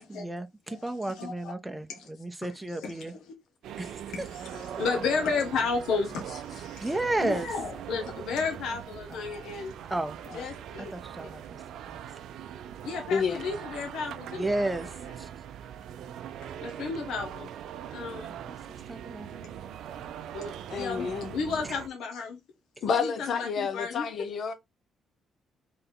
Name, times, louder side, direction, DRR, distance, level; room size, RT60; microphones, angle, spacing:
voice 1, 0.0-3.1 3.8-4.3 6.8-7.5 9.9-10.4 10.9-11.6 11.9-12.0 14.3-15.3 18.9-19.5, right 2 dB, 10° right, 0.5 m, -33 dB
voice 2, 0.7-1.5 1.9-2.0 2.8-3.3 4.1-6.9 7.2-9.7 10.3-10.9 11.2-11.3 12.8-14.5 16.4-17.5 17.9-18.3 20.3-22.4 22.8-24.1, left 5 dB, 80° left, 1.1 m, -33 dB
sound 1, 3.6-21.9, right 9 dB, 80° right, 0.4 m, -41 dB
voice 3, 20.7-21.3 22.8-24.5, left 6 dB, 60° left, 0.8 m, -29 dB
3.9 x 3.3 x 3.7 m
cardioid pair, 90°, 0 cm